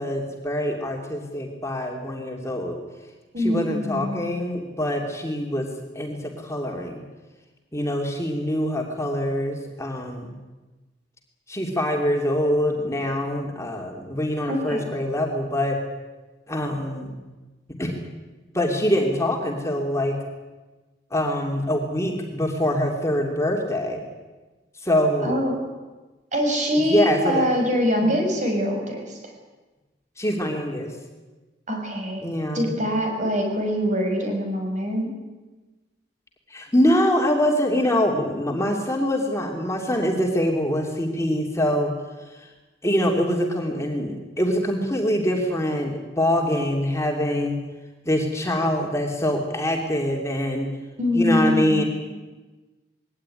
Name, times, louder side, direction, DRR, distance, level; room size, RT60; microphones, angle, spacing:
voice 1, 0.0-2.8 3.4-5.7 5.9-7.0 7.7-10.3 11.5-15.8 16.5-17.2 17.8-18.0 18.5-20.2 21.1-24.1 24.8-25.4 26.9-27.5 28.0-28.1 30.2-30.9 32.2-32.8 36.5-41.9 42.3-42.5 42.8-47.6 48.0-50.7 51.1-51.8, equal, 15° left, 1 dB, 2.8 m, -24 dB
voice 2, 3.3-4.2 14.5-14.8 25.2-25.5 26.3-29.3 31.7-32.3 32.5-35.1 51.0-51.9, equal, 45° right, 2 dB, 6.2 m, -24 dB
21.5 x 17.5 x 10.0 m, 1.2 s
head